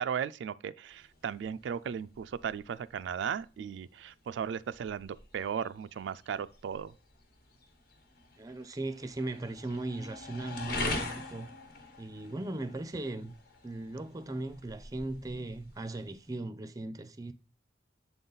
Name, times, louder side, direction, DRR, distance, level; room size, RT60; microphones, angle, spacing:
voice 1, 0.0-6.9, right 7 dB, 85° right, 0.3 m, -36 dB
sound 1, 0.9-16.4, left 2 dB, 60° left, 1.3 m, -44 dB
voice 2, 8.4-11.5 12.0-13.4 13.6-17.3, right 2 dB, 20° right, 0.5 m, -38 dB
7.2 x 3.9 x 3.9 m
head